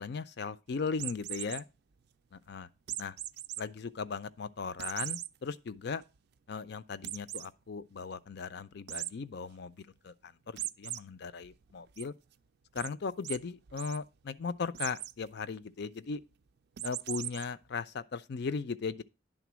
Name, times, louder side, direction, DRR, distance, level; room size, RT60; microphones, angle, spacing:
voice 1, 0.0-1.7 2.3-2.7 3.0-3.2 3.6-6.0 6.5-12.1 12.7-16.2 16.8-19.0, left 5 dB, 60° left, 0.5 m, -38 dB
sound 1, 0.9-1.6 2.9-3.6 4.0-4.1 4.8-5.3 5.8-5.9 6.2-6.3 7.0-7.5 8.9-9.1 10.6-11.0 11.4-12.0 12.8-12.9 13.2-13.4 13.7-14.0 14.7-15.1 16.8-17.4, right 13 dB, 55° right, 0.4 m, -38 dB
10.5 x 3.8 x 6.1 m
head